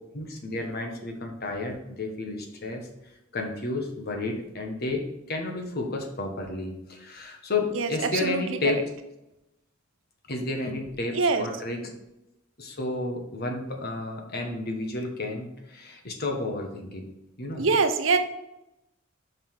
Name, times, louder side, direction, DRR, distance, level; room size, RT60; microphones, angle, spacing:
voice 1, 0.1-2.9 3.3-8.8 10.3-11.8 12.6-17.7, left 2 dB, 50° left, 3 dB, 1.3 m, -32 dB
voice 2, 7.7-8.8 11.1-11.5 17.6-18.2, right 4 dB, 75° right, 8 dB, 0.8 m, -24 dB
5.6 x 5.6 x 4.7 m, 0.89 s
head